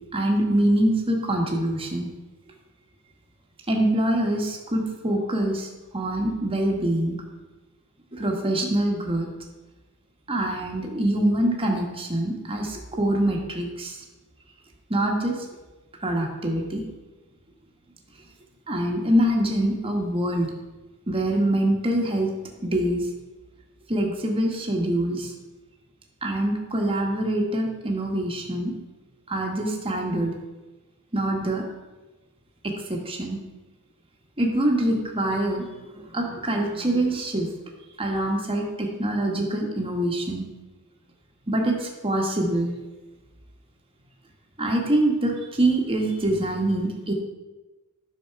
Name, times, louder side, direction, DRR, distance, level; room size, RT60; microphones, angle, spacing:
voice 1, 0.1-2.1 3.7-5.7 5.9-7.2 8.1-9.3 10.3-14.0 14.9-15.4 16.0-16.8 18.7-20.5 21.1-22.3 22.6-23.0 23.9-25.3 26.2-28.7 29.3-30.3 31.1-31.6 32.6-33.4 34.4-35.6 35.9-37.5 38.0-40.4 41.5-42.7 44.6-47.1, right 1 dB, 25° right, 0 dB, 1.5 m, -24 dB
10.0 x 6.4 x 4.7 m, 1.1 s
head